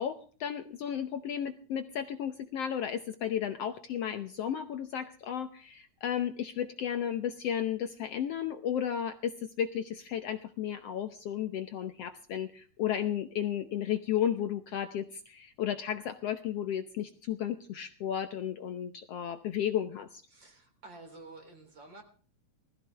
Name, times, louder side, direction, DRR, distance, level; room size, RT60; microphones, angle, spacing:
voice 1, 0.0-20.2, left 9 dB, 65° left, 8 dB, 1.7 m, -33 dB
voice 2, 20.3-22.0, right 3 dB, 40° right, 5 dB, 4.1 m, -50 dB
20.0 x 14.0 x 3.5 m, 0.42 s
omnidirectional pair, 3.4 m